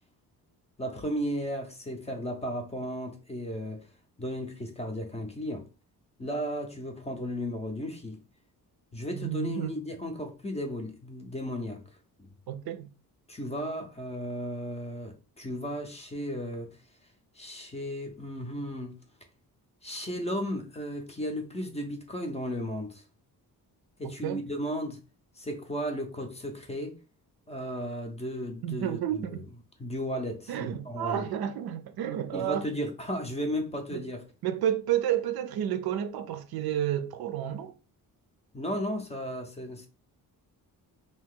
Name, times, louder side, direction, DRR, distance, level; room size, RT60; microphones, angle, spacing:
voice 1, 0.8-3.8 4.2-5.7 6.2-8.2 8.9-11.8 12.2-12.3 13.3-16.8 17.4-19.0 19.8-23.0 24.0-25.0 25.4-27.0 27.5-29.4 29.8-31.3 32.3-34.3 38.5-39.9, equal, 15° left, 0.5 m, -35 dB
voice 2, 9.1-9.7 12.5-12.9 24.2-24.4 28.6-29.5 30.5-32.7 33.9-34.1 34.4-37.7, right 10 dB, 75° right, 0.5 m, -31 dB
2.8 x 2.6 x 3.6 m
wide cardioid pair, 170°, 37 cm